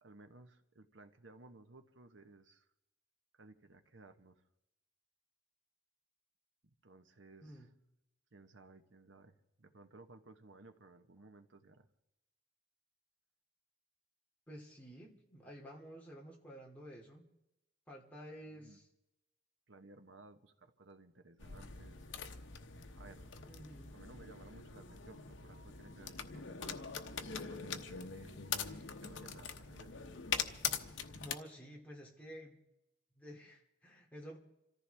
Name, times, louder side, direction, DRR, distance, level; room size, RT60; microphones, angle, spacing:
voice 1, 0.0-2.7 3.3-4.4 6.8-7.7 8.3-11.9 18.5-18.8 19.7-22.1 23.0-23.3 23.9-28.4 28.7-28.8 29.0-30.0, right 3 dB, 85° right, 8 dB, 1.2 m, -58 dB
voice 2, 7.4-7.7 14.5-17.3 17.9-18.9 23.5-24.0 31.2-32.6 33.1-34.4, equal, 10° left, -2 dB, 2.7 m, -51 dB
sound 1, 21.4-31.3, left 7 dB, 85° left, 1.0 m, -43 dB
27.0 x 14.5 x 3.5 m, 0.89 s
head